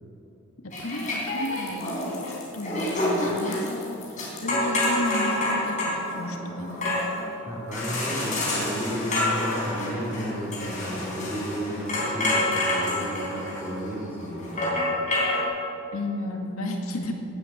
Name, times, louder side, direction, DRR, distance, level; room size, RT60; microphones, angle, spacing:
voice 1, 0.6-6.9 15.9-17.1, left 1 dB, 85° left, 2 dB, 2.0 m, -33 dB
sound 1, 0.7-15.4, left 1 dB, 35° left, 4.1 m, -28 dB
voice 2, 7.4-14.8, equal, 10° right, -4 dB, 2.8 m, -33 dB
18.5 x 9.3 x 7.4 m, 2.9 s
head